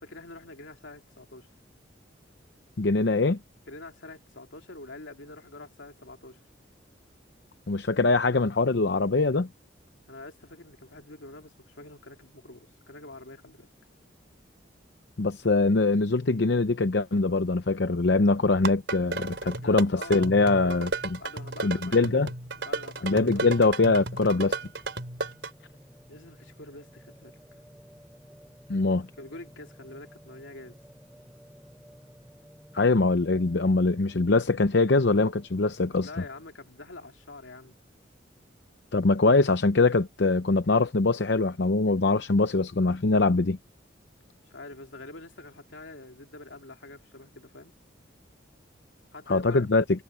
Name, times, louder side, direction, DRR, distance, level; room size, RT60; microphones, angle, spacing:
voice 1, 0.0-1.5 3.7-6.4 10.1-13.7 19.6-20.8 21.2-22.3 22.6-23.6 26.1-27.4 28.7-28.9 29.2-30.8 36.0-37.7 44.5-47.8 49.1-49.7, left 2 dB, 80° left, 3.0 m, -45 dB
voice 2, 2.8-3.4 7.7-9.5 15.2-21.2 21.6-22.3 23.0-24.6 28.7-29.1 32.7-36.1 38.9-43.6 49.3-49.8, left 3 dB, 65° left, 0.7 m, -23 dB
sound 1, 18.5-25.5, right 3 dB, 70° right, 3.6 m, -34 dB
Singing, 19.4-36.5, equal, 5° right, 7.3 m, -55 dB
head